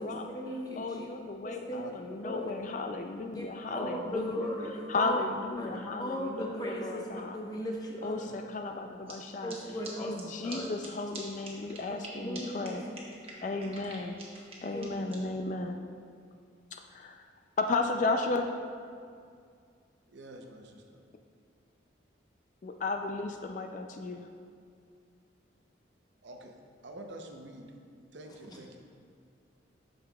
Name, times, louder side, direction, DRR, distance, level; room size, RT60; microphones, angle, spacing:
voice 1, 0.0-1.1 1.4-1.8 2.2-2.5 3.3-3.5 3.7-5.2 5.6-7.0 7.3-8.1 9.4-10.1 10.4-10.7 12.2-12.8 13.3-13.4 14.7-14.9, equal, 20° left, -1 dB, 0.8 m, -36 dB
voice 2, 0.8-7.4 8.0-12.9 13.4-14.2 14.6-15.8 16.7-17.3 17.6-18.6 22.6-24.3, left 3 dB, 40° left, 5 dB, 0.3 m, -34 dB
voice 3, 8.1-8.5 9.6-9.7 20.1-21.0 26.2-26.6 26.8-27.6 28.1-28.8, right 1 dB, 65° right, 3 dB, 0.7 m, -48 dB
sound 1, 9.1-9.2 9.5-9.6 9.8-9.9 10.2-10.3 10.5-10.6 10.8-10.9 11.1-11.2 11.4-12.1 12.3-12.4 12.6-12.7 12.9-15.1, right 4 dB, 30° right, 1.0 m, -45 dB
8.8 x 6.5 x 2.3 m, 2.2 s
head